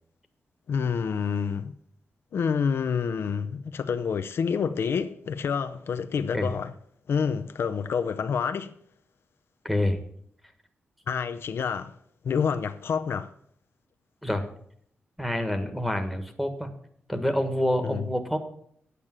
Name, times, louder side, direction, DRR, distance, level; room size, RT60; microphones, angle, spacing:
voice 1, 0.7-1.7 2.3-6.7 7.1-8.7 11.1-12.0 12.2-13.3 17.8-18.1, left 6 dB, 70° left, 0.6 m, -28 dB
voice 2, 9.6-10.0 14.2-14.4 15.2-16.7 17.1-18.4, left 1 dB, 5° right, 1.5 m, -27 dB
8.8 x 8.3 x 7.5 m
wide cardioid pair, 120°, 4 cm